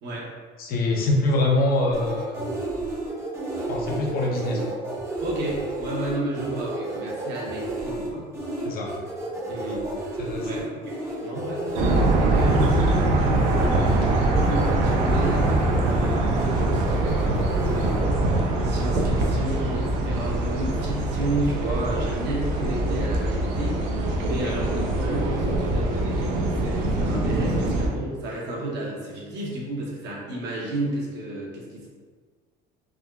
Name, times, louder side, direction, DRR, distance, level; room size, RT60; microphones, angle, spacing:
voice 1, 0.6-2.5 3.7-4.7 8.6-8.9 10.2-10.6 24.4-24.6, left 2 dB, 50° left, -1 dB, 0.6 m, -24 dB
sound 1, 1.9-18.0, right 2 dB, 15° right, 0.6 m, -32 dB
voice 2, 5.2-8.3 9.5-16.2 16.7-18.2 18.6-31.9, right 1 dB, 65° right, -3 dB, 0.9 m, -32 dB
sound 2, 11.7-27.9, right 2 dB, 80° right, 0.5 m, -23 dB
3.5 x 2.2 x 2.3 m, 1.5 s
cardioid pair, 115°, 20 cm